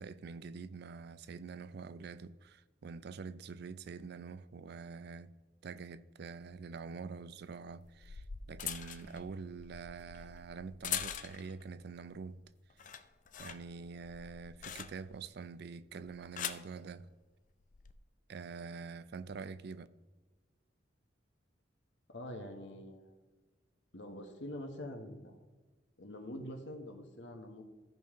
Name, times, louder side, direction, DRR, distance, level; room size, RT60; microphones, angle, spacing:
voice 1, 0.0-5.3 5.6-12.4 13.4-17.1 18.3-19.9, right 5 dB, 60° right, 0.4 m, -46 dB
sound 1, 6.4-6.5 7.7-11.6 12.1-12.4 12.7-15.3 16.0-16.7 17.6-17.9, left 9 dB, 45° left, 0.5 m, -43 dB
voice 2, 22.1-23.1 23.9-25.4 26.0-27.6, left 1 dB, 75° left, 1.4 m, -45 dB
15.0 x 5.4 x 3.7 m
head